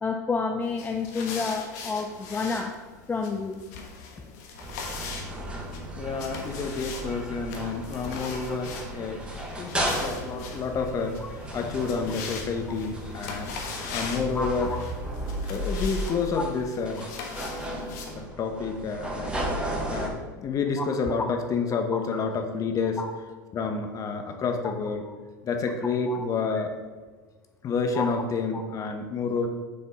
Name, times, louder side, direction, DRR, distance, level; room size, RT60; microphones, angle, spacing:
voice 1, 0.0-2.7 3.1-3.6 14.4-14.8 20.8-20.9 23.0-23.1 25.0-25.2 26.1-26.3 28.0-28.1 28.5-28.6, left 4 dB, 15° left, 4 dB, 0.5 m, -30 dB
sound 1, 0.6-18.1, left 5 dB, 65° left, 1.3 m, -41 dB
sound 2, 4.6-20.1, right 1 dB, 10° right, 1.4 m, -35 dB
voice 2, 5.9-9.2 9.6-14.7 15.5-17.0 18.2-19.4 19.6-23.0 23.5-25.0 25.4-26.7 27.6-29.5, left 4 dB, 35° left, 5 dB, 1.1 m, -29 dB
6.9 x 4.2 x 5.3 m, 1.4 s
hypercardioid pair, 95°, 10 cm